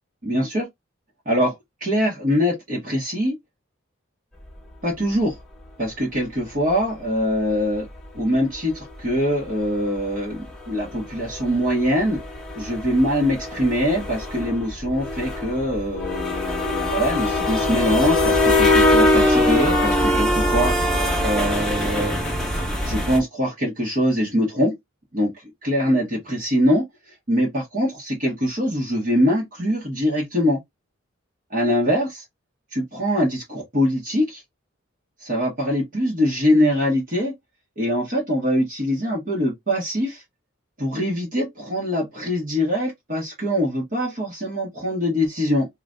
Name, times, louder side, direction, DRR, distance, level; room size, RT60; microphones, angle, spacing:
voice 1, 0.2-0.7 1.3-1.5 1.8-3.3 4.8-5.3 5.8-7.9 8.1-12.2 12.6-22.2 22.8-24.7 25.1-25.3 25.6-26.8 27.3-30.6 31.5-32.2 32.7-34.4 35.2-37.3 37.8-40.2 40.8-45.7, equal, 40° right, 1.1 m, -23 dB
sound 1, 6.7-6.8 8.5-8.7 9.1-9.2 9.4-9.6 10.0-10.1 10.4-23.2, left 1 dB, 5° left, 0.8 m, -22 dB
2.5 x 2.5 x 3.2 m
head